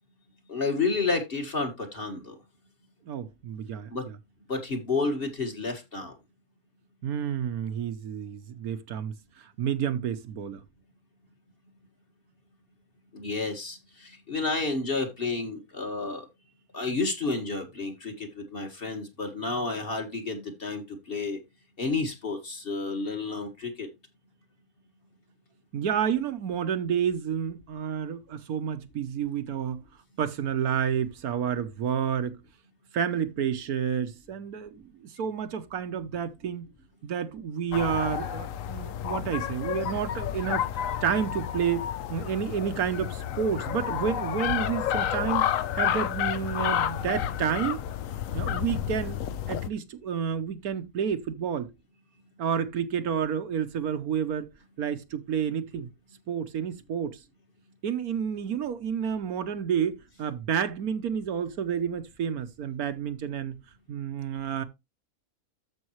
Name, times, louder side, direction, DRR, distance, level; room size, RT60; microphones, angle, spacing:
voice 1, 0.5-2.3 3.9-4.1 4.5-6.1 13.1-16.2 16.7-21.4 21.8-23.9, left 3 dB, 40° left, 2.0 m, -30 dB
voice 2, 3.1-4.2 7.0-10.6 25.7-29.8 30.2-32.4 32.9-36.7 37.0-47.8 48.3-49.2 49.5-51.7 52.4-54.5 54.8-55.9 56.3-57.2 57.8-63.5 63.9-64.6, right 8 dB, 80° right, 1.4 m, -30 dB
sound 1, 37.7-49.7, left 10 dB, 65° left, 1.0 m, -30 dB
13.5 x 5.4 x 3.1 m
omnidirectional pair, 1.6 m